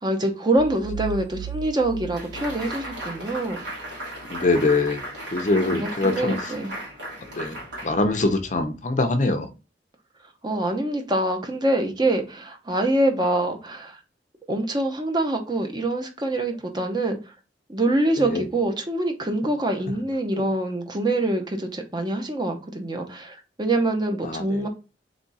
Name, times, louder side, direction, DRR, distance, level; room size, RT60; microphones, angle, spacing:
voice 1, 0.0-3.6 5.7-6.7 10.4-14.0 14.5-17.2 17.7-24.7, right 1 dB, 25° right, 0.8 m, -25 dB
sound 1, 0.6-3.4, right 10 dB, 50° right, 0.4 m, -36 dB
sound 2, 2.1-8.6, right 1 dB, 85° right, 2.3 m, -36 dB
voice 2, 4.3-5.0 5.3-6.3 7.4-7.6 7.8-9.5 18.2-18.4 24.2-24.7, left 2 dB, 45° left, 0.6 m, -23 dB
3.6 x 3.5 x 4.1 m
head